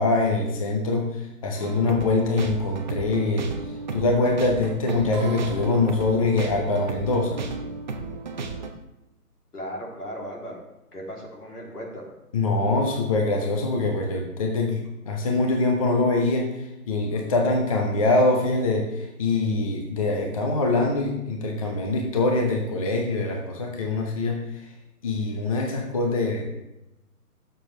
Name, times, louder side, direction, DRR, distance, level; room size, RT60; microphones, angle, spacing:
voice 1, 0.0-3.5 3.9-7.4 12.3-24.6 25.0-26.4, left 2 dB, 25° left, 1 dB, 0.7 m, -24 dB
sound 1, 1.6-8.7, right 4 dB, 30° right, 0.7 m, -33 dB
voice 2, 9.5-10.6 10.9-12.1, equal, 80° left, -2 dB, 3.2 m, -36 dB
12.0 x 6.9 x 3.3 m, 0.94 s
figure-of-eight pair, 150°, 46 cm